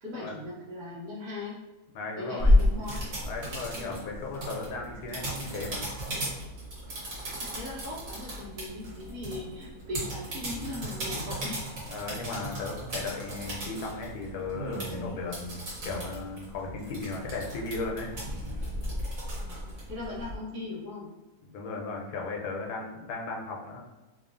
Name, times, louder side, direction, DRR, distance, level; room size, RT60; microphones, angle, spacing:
voice 1, 0.0-1.5 2.2-3.0 3.8-4.0 7.4-11.7 19.4-21.1, left 2 dB, 85° right, -7 dB, 1.2 m, -39 dB
voice 2, 1.9-2.6 3.2-5.9 11.9-15.4 15.8-18.1 21.4-23.8, left 3 dB, 90° left, 0 dB, 1.1 m, -36 dB
sound 1, 2.4-20.4, left 1 dB, 65° right, 1.4 m, -33 dB
2.9 x 2.3 x 2.4 m, 1.1 s
omnidirectional pair, 1.6 m